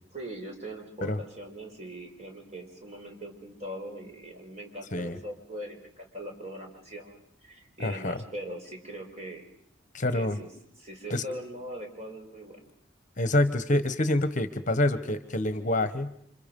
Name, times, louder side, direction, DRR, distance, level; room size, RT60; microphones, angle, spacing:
voice 1, 0.1-9.4 10.1-10.5 10.8-12.6, right 1 dB, 35° right, 2 dB, 4.8 m, -41 dB
voice 2, 7.8-8.2 9.9-10.4 11.1-11.2 13.2-16.1, left 1 dB, 40° left, 12 dB, 1.1 m, -27 dB
30.0 x 26.5 x 5.4 m, 0.69 s
head